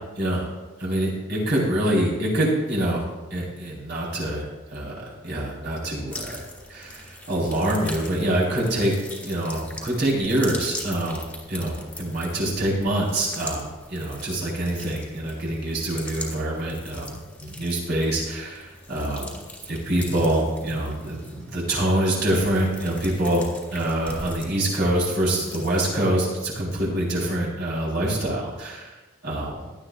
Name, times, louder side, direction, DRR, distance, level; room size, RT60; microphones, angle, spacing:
voice 1, 0.8-3.0 3.3-4.4 4.7-6.4 6.7-8.9 9.2-19.3 19.7-23.5 23.7-28.9 29.2-29.7, right 1 dB, 60° right, -5 dB, 4.5 m, -25 dB
sound 1, 6.1-25.8, left 1 dB, 5° left, 2.2 m, -41 dB
17.0 x 12.0 x 2.5 m, 1.2 s
head